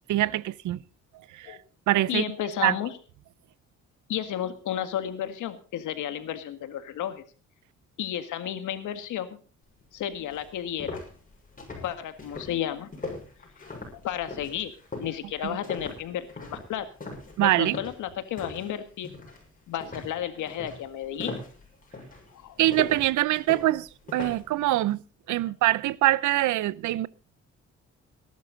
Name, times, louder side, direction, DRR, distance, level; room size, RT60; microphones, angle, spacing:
voice 1, 0.1-0.8 1.3-1.6 1.9-2.2 2.6-2.7 15.4-15.6 17.4-17.8 22.6-25.0 25.3-27.1, right 15 dB, 80° right, 0.7 m, -24 dB
voice 2, 2.1-2.9 4.1-7.2 8.0-9.4 9.9-11.0 11.8-12.9 14.0-14.7 15.0-16.9 17.4-19.1 19.7-21.4 22.3-22.6, left 10 dB, 80° left, 1.9 m, -32 dB
sound 1, 9.8-9.9 10.3-18.8 19.0-19.4 19.8-24.5, left 3 dB, 25° left, 6.6 m, -39 dB
18.5 x 11.5 x 4.0 m
cardioid pair, 90°, 30 cm